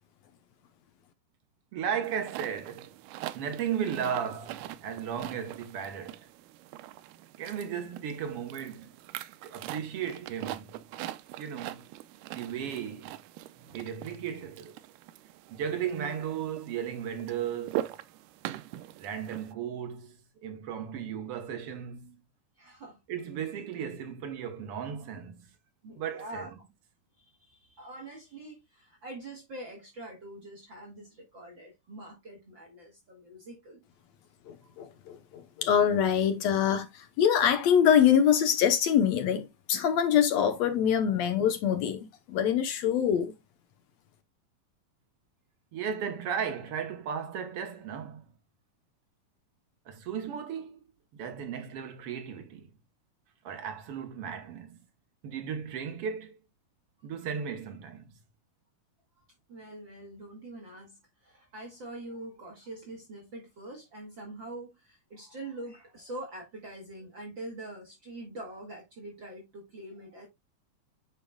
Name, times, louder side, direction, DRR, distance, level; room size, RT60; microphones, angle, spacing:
voice 1, 1.7-2.9 3.3-6.3 7.4-8.9 9.4-10.8 11.4-11.9 12.3-13.1 13.6-14.8 15.5-17.9 19.0-22.2 23.1-25.5 25.9-26.5 45.7-48.2 49.9-50.8 51.1-52.7 53.4-54.8 55.2-56.4 57.0-58.1, right 8 dB, 60° right, 1.6 m, -35 dB
sound 1, 2.0-19.5, right 14 dB, 85° right, 2.2 m, -42 dB
voice 2, 22.6-23.0 25.8-26.5 27.2-33.8 34.6-34.7 59.2-70.3, right 1 dB, 40° right, 2.2 m, -44 dB
voice 3, 34.5-43.3, left 8 dB, 70° left, 1.9 m, -24 dB
8.8 x 5.4 x 2.3 m
omnidirectional pair, 3.6 m